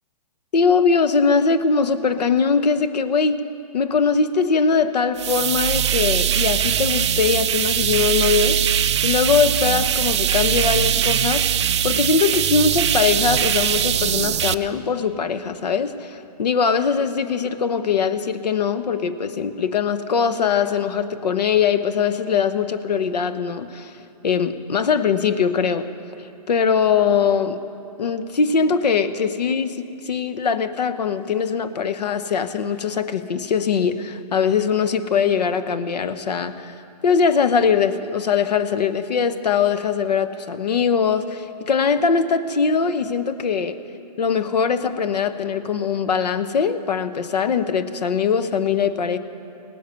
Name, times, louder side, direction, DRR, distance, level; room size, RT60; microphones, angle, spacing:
voice 1, 0.5-3.4 3.7-8.6 9.0-11.4 11.8-23.9 24.2-25.9 26.2-27.6 28.0-36.7 37.0-43.8 44.2-49.2, left 6 dB, 80° left, 12 dB, 0.9 m, -21 dB
sound 1, 5.2-14.5, right 9 dB, 45° right, 0.4 m, -21 dB
18.0 x 10.5 x 6.8 m, 2.7 s
hypercardioid pair, 165°, 21 cm